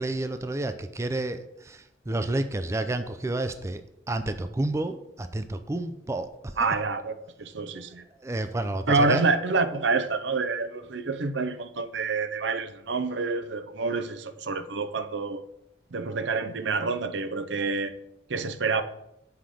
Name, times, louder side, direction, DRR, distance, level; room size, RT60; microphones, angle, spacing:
voice 1, 0.0-6.7 8.2-9.2, right 2 dB, 15° right, 0.4 m, -30 dB
voice 2, 6.6-8.0 8.9-15.4 15.9-17.9 18.3-18.8, right 4 dB, 80° right, 0.6 m, -27 dB
7.5 x 5.8 x 4.9 m
head